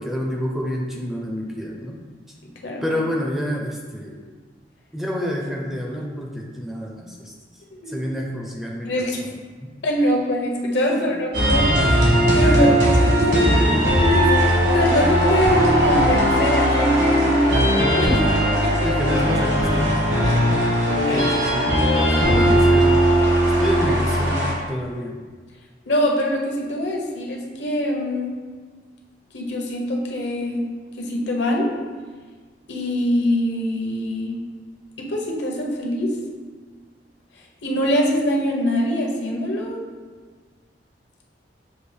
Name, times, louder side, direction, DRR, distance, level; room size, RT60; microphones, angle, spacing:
voice 1, 0.0-2.0 2.8-4.2 4.9-7.3 7.9-8.9 9.6-9.7 10.9-11.1 12.4-12.8 13.3-13.9 18.0-18.3 18.8-20.0 21.0-22.9 23.6-25.2, equal, ahead, -1 dB, 0.4 m, -28 dB
voice 2, 2.4-2.8 7.8-7.9 8.8-9.2 9.8-13.5 14.0-18.1 20.3-20.4 21.0-21.3 21.9-22.5 23.2-23.5 25.9-28.4 29.3-30.7 31.0-31.7 32.7-34.4 35.0-36.1 37.6-39.8, equal, 75° left, -1 dB, 0.8 m, -23 dB
sound 1, 11.3-24.5, equal, 70° right, 1.3 m, -18 dB
6.8 x 2.4 x 3.2 m, 1.5 s
head